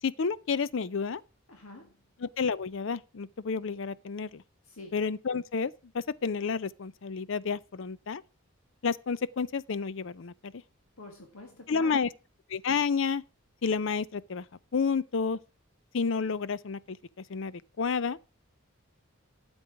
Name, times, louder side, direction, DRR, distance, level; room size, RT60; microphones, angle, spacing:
voice 1, 0.0-1.2 2.2-4.4 4.9-8.2 8.8-10.5 11.7-12.1 12.5-13.2 13.6-14.4 14.7-15.4 15.9-17.0 17.3-18.2, left 5 dB, 60° left, 0.5 m, -30 dB
voice 2, 1.5-1.9 4.6-5.0 11.0-12.0, left 2 dB, 80° left, 1.9 m, -47 dB
12.5 x 8.0 x 4.6 m
head